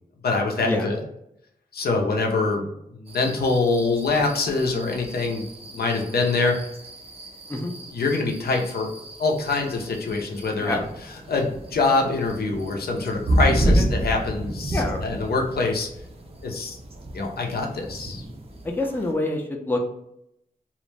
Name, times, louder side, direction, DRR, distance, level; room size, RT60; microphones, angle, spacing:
voice 1, 0.2-1.0 1.7-6.7 7.9-8.9 9.2-10.8 11.3-15.9 16.4-16.8 17.1-18.2, left 3 dB, 85° left, 1 dB, 0.5 m, -24 dB
sound 1, 3.1-19.1, right 1 dB, 40° right, 0.5 m, -30 dB
voice 2, 14.7-15.0 18.6-19.8, left 2 dB, 15° left, 2 dB, 0.4 m, -26 dB
2.4 x 2.0 x 3.2 m, 0.78 s
wide cardioid pair, 95°, 16 cm